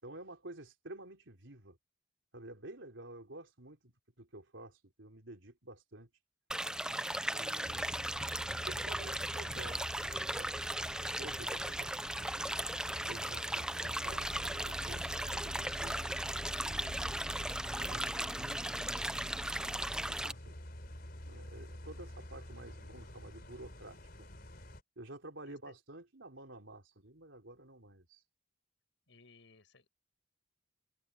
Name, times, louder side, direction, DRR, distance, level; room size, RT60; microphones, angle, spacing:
voice 1, 0.0-1.8 2.3-6.1 7.3-8.1 8.6-10.5 11.2-12.6 13.1-16.0 16.6-17.3 17.8-20.6 21.3-24.3 25.0-28.2, right 2 dB, 80° right, 3.7 m, -51 dB
sound 1, 6.5-20.3, right 1 dB, 5° right, 0.5 m, -37 dB
sound 2, 7.6-24.8, left 1 dB, 55° left, 4.1 m, -48 dB
sound 3, 14.0-20.2, equal, 35° right, 2.2 m, -48 dB
voice 2, 29.1-29.9, left 3 dB, 75° left, 5.6 m, -61 dB
head